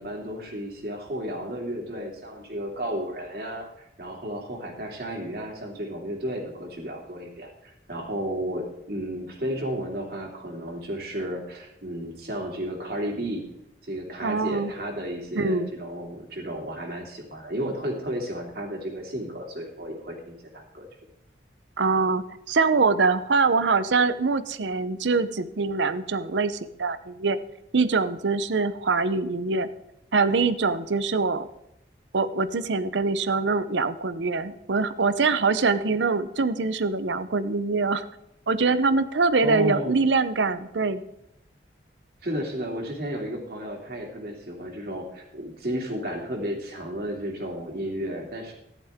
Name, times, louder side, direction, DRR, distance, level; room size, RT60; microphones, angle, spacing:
voice 1, 0.0-13.4 13.8-20.9 39.4-39.9 42.2-48.5, equal, 55° right, 0 dB, 2.7 m, -33 dB
voice 2, 14.2-14.7 15.3-15.7 21.8-27.4 27.7-29.7 30.1-31.5 32.1-38.1 38.5-41.0, right 4 dB, 85° right, 13 dB, 0.7 m, -24 dB
14.0 x 11.0 x 3.6 m, 0.80 s
head